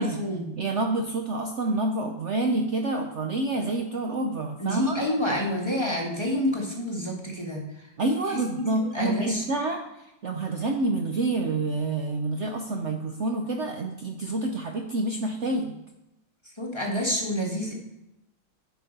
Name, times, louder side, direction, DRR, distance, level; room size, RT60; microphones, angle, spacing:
voice 1, 0.0-0.5 4.6-7.6 8.6-8.7 8.9-9.4 16.6-17.7, equal, 15° left, -2 dB, 1.3 m, -28 dB
voice 2, 0.6-5.0 8.0-15.8, right 2 dB, 70° right, 3 dB, 0.6 m, -28 dB
10.5 x 5.3 x 3.9 m, 0.88 s
omnidirectional pair, 2.0 m